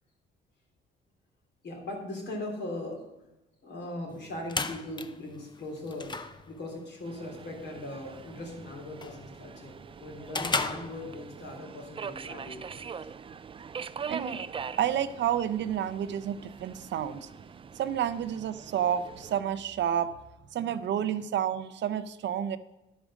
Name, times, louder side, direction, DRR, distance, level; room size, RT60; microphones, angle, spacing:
voice 1, 1.6-3.1 3.6-6.1 6.5-12.6 12.9-13.1, left 1 dB, 60° left, 0 dB, 3.2 m, -39 dB
sound 1, 4.1-11.6, left 3 dB, 20° left, 0.6 m, -37 dB
Subway metro underground, 7.0-19.4, right 6 dB, 25° right, 0.4 m, -43 dB
voice 2, 14.1-14.4 14.8-17.3 17.7-20.2 20.5-22.6, right 9 dB, 65° right, 12 dB, 0.6 m, -30 dB
11.5 x 5.1 x 6.2 m, 0.95 s
cardioid pair, 90°, 20 cm